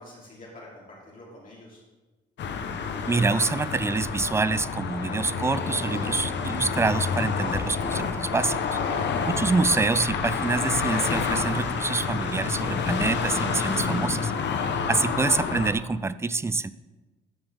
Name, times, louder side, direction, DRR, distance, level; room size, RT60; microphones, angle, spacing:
voice 1, 0.0-1.8 8.7-9.0, left 1 dB, 45° left, -6 dB, 3.1 m, -46 dB
sound 1, 2.4-15.7, left 5 dB, 65° left, 0.9 m, -28 dB
voice 2, 3.1-8.8 9.3-14.3 14.9-16.7, right 3 dB, 15° right, 16 dB, 0.3 m, -26 dB
14.0 x 5.4 x 3.5 m, 1.2 s
cardioid pair, 90°, 20 cm